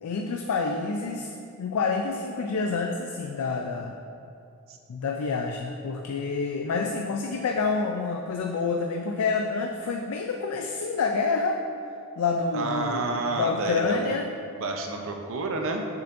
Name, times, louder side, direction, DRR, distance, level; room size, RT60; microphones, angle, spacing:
voice 1, 0.0-1.3 1.6-3.9 4.9-11.6 12.2-14.3, left 4 dB, 75° left, 3 dB, 0.4 m, -28 dB
voice 2, 12.5-14.1 14.6-15.8, right 3 dB, 65° right, 3 dB, 0.7 m, -30 dB
6.8 x 6.7 x 2.6 m, 2.6 s
head